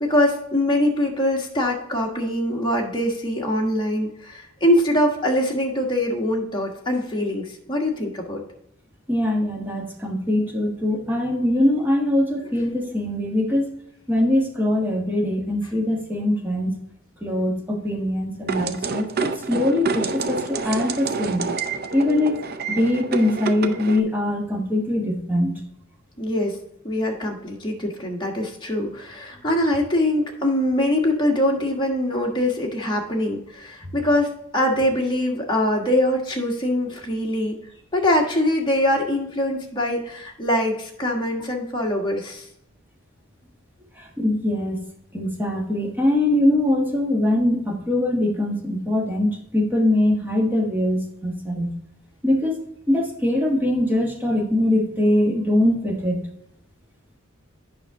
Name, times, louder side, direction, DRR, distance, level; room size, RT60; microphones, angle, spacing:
voice 1, 0.0-8.4 26.2-26.6 26.8-37.6 37.9-42.4, left 1 dB, 25° left, -1 dB, 1.4 m, -23 dB
voice 2, 9.1-13.7 14.1-16.8 17.2-21.5 21.9-22.5 22.7-25.6 44.0-44.8 45.1-51.7 52.2-56.2, left 1 dB, 10° right, 0 dB, 1.4 m, -22 dB
sound 1, 18.5-24.0, right 4 dB, 50° right, 0.5 m, -28 dB
8.8 x 5.7 x 3.6 m, 0.78 s
head